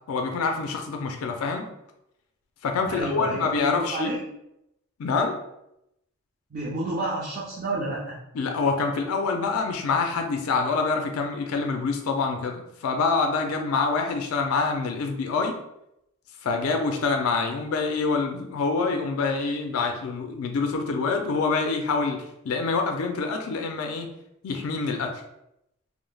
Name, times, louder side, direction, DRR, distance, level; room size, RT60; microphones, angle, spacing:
voice 1, 0.1-1.7 2.6-4.1 5.0-5.4 8.3-15.6 16.4-22.2 22.4-24.1 24.4-25.1, left 4 dB, 85° left, 4 dB, 0.4 m, -26 dB
voice 2, 2.9-4.2 6.5-8.2, right 2 dB, 40° right, -6 dB, 0.4 m, -30 dB
2.3 x 2.0 x 3.1 m, 0.81 s
head